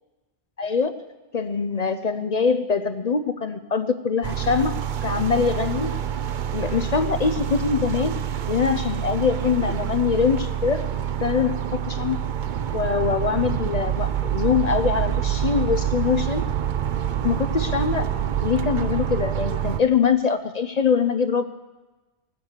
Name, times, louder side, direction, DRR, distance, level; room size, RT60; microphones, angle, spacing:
voice 1, 0.6-0.9 1.3-4.7 5.0-5.9 6.5-8.2 8.5-10.9 11.2-12.2 12.7-16.4 17.2-18.0 18.4-21.4, left 6 dB, 45° left, 10 dB, 0.6 m, -23 dB
sound 1, 4.2-19.8, right 10 dB, 55° right, 0.6 m, -26 dB
19.0 x 7.3 x 7.4 m, 1.2 s
omnidirectional pair, 1.2 m